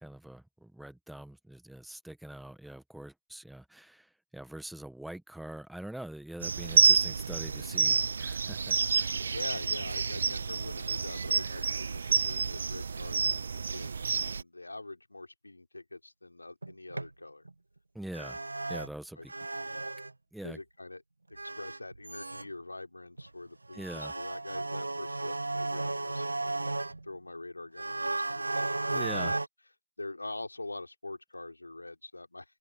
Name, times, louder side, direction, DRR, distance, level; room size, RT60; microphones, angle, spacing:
voice 1, 0.0-9.2 17.9-18.4 18.7-19.3 20.3-20.6 23.7-24.1 28.8-29.3, right 1 dB, ahead, 1.5 m, -44 dB
Dusk nature sounds Ambisonic Aformat, 6.4-14.4, right 5 dB, 45° right, 0.4 m, -29 dB
voice 2, 9.2-17.5 19.2-19.3 19.6-19.8 20.4-21.0 21.3-29.3 30.0-32.6, left 2 dB, 80° left, 3.5 m, -44 dB
sound 1, 16.6-17.1 17.5-17.6 18.1-18.9 19.2-20.1 21.3-22.5 23.2-23.3 23.7-27.2 27.8-29.5, right 2 dB, 80° right, 1.2 m, -34 dB
open air
figure-of-eight pair, 160°, 0 cm